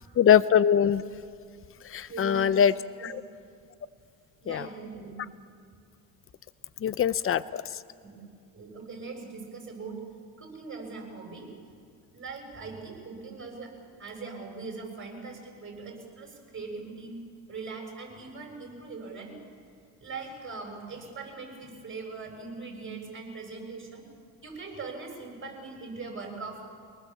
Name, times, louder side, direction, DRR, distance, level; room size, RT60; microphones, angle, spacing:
voice 1, 0.2-1.0 1.8-2.8 3.0-3.2 4.5-4.7 6.8-7.6, left 8 dB, 30° left, 16 dB, 0.7 m, -22 dB
voice 2, 2.1-2.6 3.0-3.2 4.4-5.1 8.0-8.2 8.5-10.0 10.4-11.5 12.1-13.7 14.0-17.2 17.5-19.3 20.0-24.0 24.4-26.6, right 4 dB, 30° right, 1 dB, 7.1 m, -41 dB
25.0 x 19.5 x 7.5 m, 2.3 s
cardioid pair, 95°, 42 cm